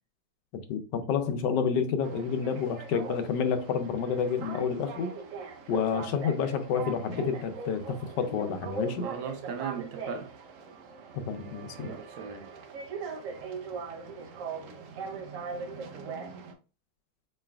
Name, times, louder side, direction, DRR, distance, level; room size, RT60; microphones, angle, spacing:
voice 1, 0.7-5.1 5.7-9.1 11.1-11.9, left 6 dB, 80° left, 1.2 m, -29 dB
sound 1, 2.0-16.5, right 5 dB, 65° right, 0.8 m, -41 dB
voice 2, 9.0-10.3 11.8-12.5, right 6 dB, 85° right, 1.4 m, -38 dB
4.5 x 3.2 x 2.3 m
omnidirectional pair, 2.0 m